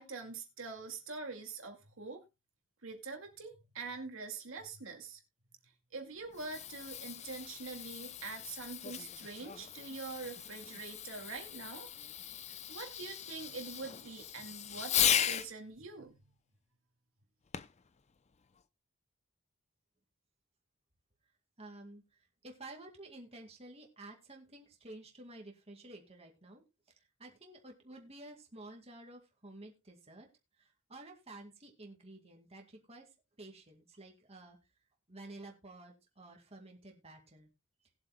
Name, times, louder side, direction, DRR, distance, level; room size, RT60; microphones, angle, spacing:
voice 1, 0.0-2.2 2.8-5.2 5.9-11.9 12.7-16.2, right 4 dB, 75° right, 2.2 m, -44 dB
Fireworks, 6.2-15.5 17.5-17.9 18.6-18.7, left 9 dB, 35° left, 0.5 m, -37 dB
voice 2, 21.6-30.3 30.6-33.1 33.4-34.6 35.1-37.5, right 2 dB, 30° right, 2.1 m, -52 dB
20.0 x 7.8 x 2.2 m
head